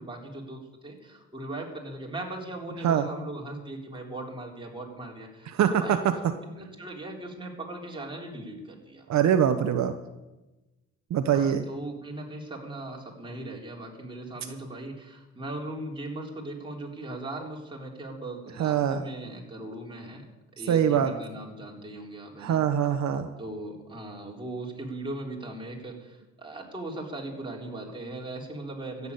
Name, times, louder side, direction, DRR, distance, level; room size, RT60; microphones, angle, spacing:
voice 1, 0.0-9.1 11.3-20.2 20.6-22.6 23.4-29.1, right 1 dB, 15° right, -1 dB, 3.9 m, -39 dB
voice 2, 5.5-6.1 9.1-9.9 11.1-11.7 18.6-19.0 20.7-21.1 22.4-23.3, right 9 dB, 65° right, 8 dB, 1.0 m, -23 dB
14.0 x 7.2 x 9.7 m, 1.1 s
cardioid pair, 90°, 30 cm